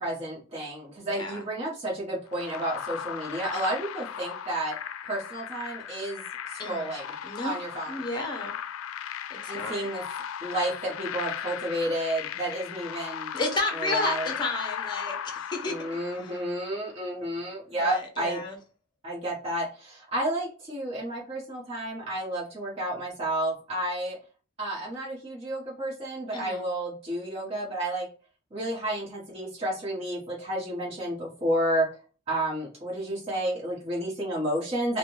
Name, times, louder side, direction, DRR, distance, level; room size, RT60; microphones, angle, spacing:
voice 1, 0.0-4.8 5.1-7.1 7.4-7.9 9.5-10.0 10.4-13.3 13.8-14.3 15.6-18.4 19.0-24.2 24.6-28.1 28.5-31.9 32.3-35.0, right 1 dB, 30° right, -6 dB, 1.2 m, -31 dB
voice 2, 1.0-1.4 6.6-6.9 7.2-7.6 7.9-8.5 9.3-9.9 13.3-15.8 16.2-16.3 17.8-18.6 26.3-26.6, left 2 dB, 20° left, 3 dB, 0.6 m, -32 dB
sound 1, 2.3-16.7, left 9 dB, 90° left, 0.3 m, -37 dB
3.2 x 2.2 x 3.1 m, 0.36 s
head